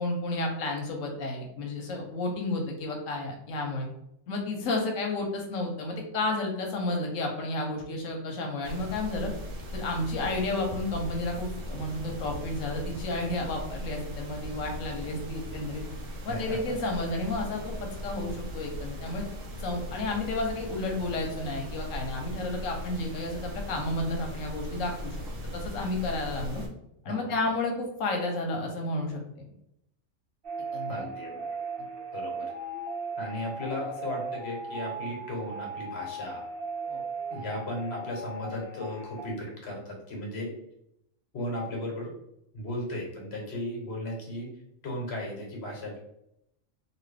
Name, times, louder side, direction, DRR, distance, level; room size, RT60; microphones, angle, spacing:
voice 1, 0.0-3.9 4.3-9.3 9.7-15.8 16.2-19.2 19.6-25.2 25.5-26.6 27.0-29.2 30.7-31.0 36.9-37.0, left 2 dB, 80° left, 2 dB, 1.1 m, -31 dB
sound 1, 8.6-26.7, equal, 80° right, 1.1 m, -39 dB
voice 2, 16.3-16.6 27.0-27.5 30.9-31.4 32.1-32.5 33.2-36.5 37.3-40.5 41.3-42.1 42.5-44.5 44.8-46.0, left 1 dB, 55° left, -1 dB, 1.2 m, -36 dB
sound 2, 30.4-39.3, right 3 dB, 50° right, 0.9 m, -37 dB
3.0 x 2.7 x 3.3 m, 0.81 s
omnidirectional pair, 1.3 m